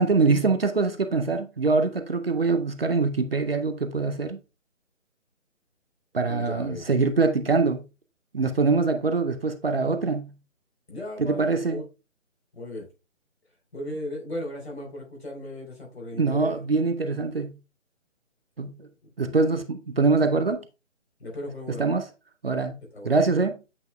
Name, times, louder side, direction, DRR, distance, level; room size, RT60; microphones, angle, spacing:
voice 1, 0.0-4.4 6.1-7.8 8.3-10.3 11.2-11.8 16.2-17.6 18.6-18.9 19.2-20.6 21.7-22.0 22.4-22.8 23.0-23.6, right 4 dB, 50° right, 0.7 m, -24 dB
voice 2, 6.3-6.8 10.9-11.8 12.5-12.9 13.7-16.6 19.2-19.6 21.2-22.0 22.8-23.2, left 1 dB, 50° left, 3.8 m, -37 dB
8.3 x 5.3 x 2.2 m
figure-of-eight pair, 150°, 39 cm